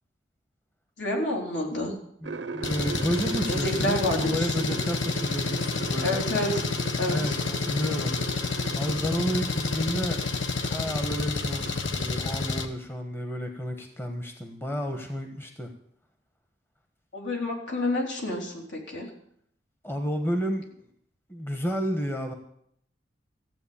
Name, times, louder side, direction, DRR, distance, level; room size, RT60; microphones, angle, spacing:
voice 1, 1.0-1.9 3.5-4.8 6.0-6.6 7.0-7.3 17.1-19.1, left 1 dB, 65° left, 0 dB, 3.5 m, -29 dB
voice 2, 2.2-6.2 7.0-10.3 10.7-15.7 19.8-20.9 21.3-22.3, equal, 15° left, 5 dB, 1.3 m, -31 dB
sound 1, 2.2-11.2 11.4-12.1, right 3 dB, 85° right, 1.0 m, -38 dB
Engine, 2.6-12.7, left 3 dB, 85° left, 1.3 m, -29 dB
15.0 x 8.1 x 8.6 m, 0.72 s
head